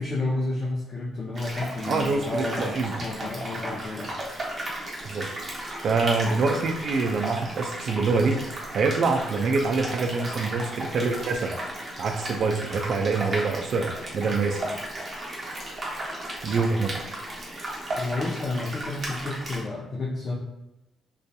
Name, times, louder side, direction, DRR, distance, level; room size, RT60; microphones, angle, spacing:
voice 1, 0.0-4.2 6.4-6.5 18.0-20.3, left 2 dB, 45° left, -5 dB, 0.5 m, -31 dB
sound 1, 1.3-19.6, right 1 dB, 35° right, 0.8 m, -34 dB
voice 2, 1.9-3.0 5.0-5.3 5.8-8.4 8.7-11.5 12.0-14.7 16.4-16.9, right 4 dB, 60° right, 4 dB, 0.3 m, -25 dB
2.6 x 2.3 x 2.3 m, 0.92 s
cardioid pair, 90°, 0 cm